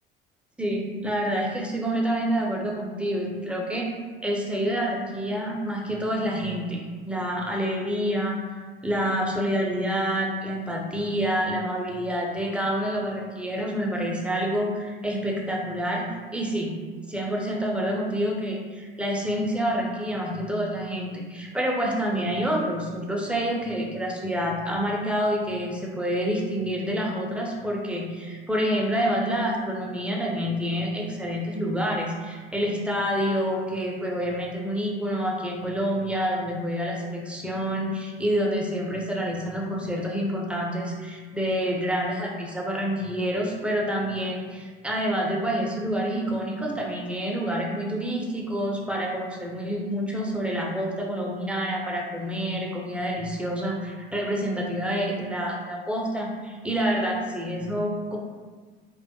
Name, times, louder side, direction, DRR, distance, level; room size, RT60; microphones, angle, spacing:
voice 1, 0.6-3.9 4.2-8.4 8.8-16.7 17.1-58.2, equal, 5° right, -2 dB, 0.4 m, -28 dB
2.2 x 2.1 x 2.7 m, 1.5 s
figure-of-eight pair, 60°, 30 cm